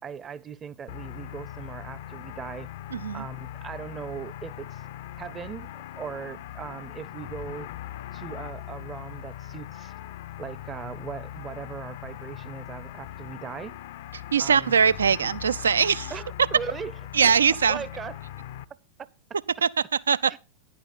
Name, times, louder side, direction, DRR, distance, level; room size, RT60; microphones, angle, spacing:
voice 1, 0.0-2.7 3.1-4.8 5.2-7.7 8.1-9.9 10.4-13.8 14.4-14.7 16.1-16.9 17.2-17.3 17.7-18.2 20.3-20.4, right 7 dB, 20° right, 0.6 m, -39 dB
sound 1, 0.9-18.7, left 12 dB, 55° left, 0.5 m, -40 dB
voice 2, 2.9-3.2 14.3-16.1 17.1-17.8 19.6-19.7 20.1-20.3, right 6 dB, 70° right, 0.4 m, -21 dB
10.5 x 8.8 x 3.9 m
figure-of-eight pair, 90°, 0 cm